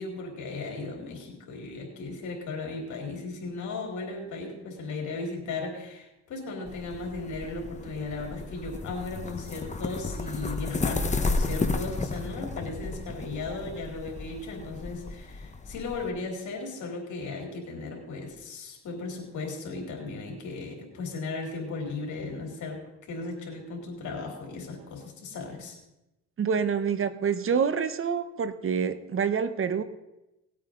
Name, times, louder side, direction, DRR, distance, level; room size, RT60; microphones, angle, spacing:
voice 1, 0.0-25.8, left 3 dB, 75° left, 1 dB, 3.9 m, -36 dB
sound 1, 6.7-16.1, left 3 dB, 25° left, 1.2 m, -33 dB
voice 2, 26.4-29.8, right 6 dB, 45° right, 13 dB, 1.0 m, -27 dB
18.5 x 8.6 x 3.9 m, 0.93 s
cardioid pair, 90°, 30 cm